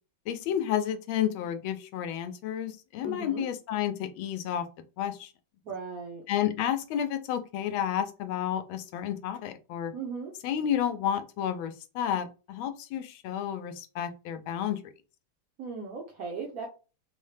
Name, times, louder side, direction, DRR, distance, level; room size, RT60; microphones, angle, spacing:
voice 1, 0.3-4.7 5.0-5.3 6.3-9.9 10.4-14.8, left 10 dB, 85° left, 9 dB, 1.4 m, -31 dB
voice 2, 3.0-3.4 5.6-6.2 9.9-10.3 15.6-16.7, right 4 dB, 65° right, 1 dB, 0.9 m, -37 dB
4.0 x 2.1 x 3.2 m, 0.33 s
omnidirectional pair, 2.2 m